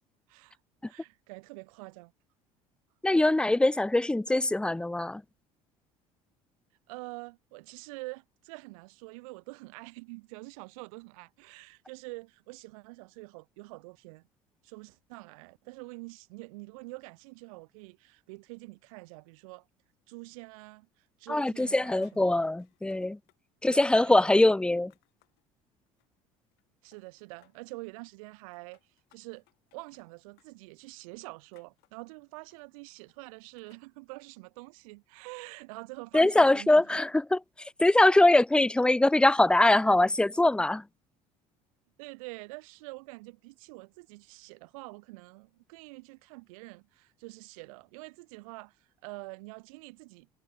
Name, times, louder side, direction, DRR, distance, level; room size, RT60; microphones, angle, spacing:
voice 1, 0.9-2.1 6.9-14.2 14.6-19.7 20.1-22.3 23.7-24.3 26.8-28.8 29.1-29.4 29.7-37.0 42.0-50.3, right 26 dB, 75° right, 1.1 m, -46 dB
voice 2, 3.0-5.2 21.3-23.2 23.6-24.9 36.1-40.8, left 2 dB, 5° left, 0.4 m, -23 dB
sound 1, 20.6-21.2 21.4-23.4 23.6-25.4 25.9-26.6 26.9-27.8 28.3-33.9, left 22 dB, 65° left, 6.9 m, -69 dB
hypercardioid pair, 65°, 18 cm